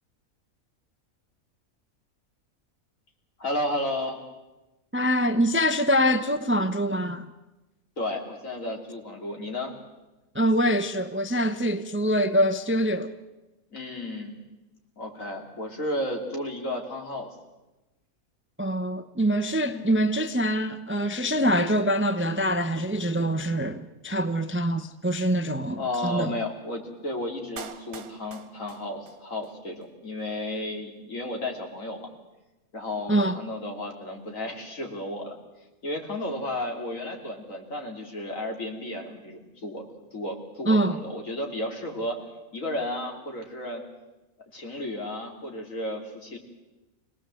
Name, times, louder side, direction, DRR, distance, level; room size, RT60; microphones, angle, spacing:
voice 1, 3.4-4.2 8.0-9.7 13.7-14.4 15.0-17.3 19.6-19.9 25.8-32.1 32.7-35.4 35.8-39.9 40.1-42.2 42.5-43.8 44.5-46.4, left 1 dB, 65° left, 3.5 m, -33 dB
voice 2, 4.9-7.2 10.3-13.1 18.6-26.4 33.1-33.4 40.7-41.0, equal, 10° right, 0.7 m, -24 dB
Clapping, 27.6-29.6 29.8-29.9, right 6 dB, 80° right, 1.7 m, -43 dB
26.0 x 18.5 x 7.7 m
omnidirectional pair, 1.5 m